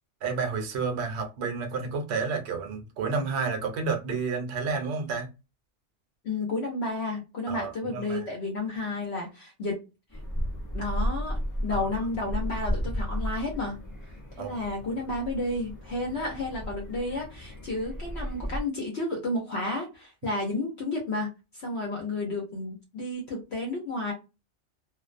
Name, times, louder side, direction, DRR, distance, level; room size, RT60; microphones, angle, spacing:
voice 1, 0.2-5.3 7.5-8.2 11.7-11.9 14.4-14.6 16.2-16.3, right 4 dB, 70° right, 0.9 m, -30 dB
voice 2, 6.2-9.8 10.7-13.8 14.4-21.3 21.5-24.1, left 2 dB, 65° left, 0.9 m, -31 dB
sound 1, 10.1-18.6, equal, 20° left, 0.6 m, -34 dB
2.4 x 2.0 x 2.4 m
omnidirectional pair, 1.2 m